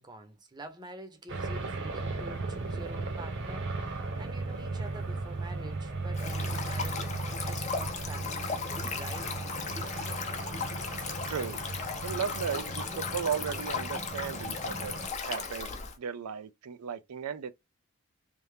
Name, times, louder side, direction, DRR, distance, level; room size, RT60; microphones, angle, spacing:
voice 1, 0.0-3.7 4.2-7.1 7.4-10.0, right 2 dB, 20° right, 0.8 m, -47 dB
sound 1, 1.3-15.1, right 3 dB, 55° right, 0.9 m, -36 dB
Stream, 6.1-15.9, left 5 dB, 30° left, 0.6 m, -36 dB
voice 2, 11.3-11.6 12.0-15.7 16.0-17.5, right 7 dB, 85° right, 0.5 m, -35 dB
3.4 x 2.7 x 3.2 m
head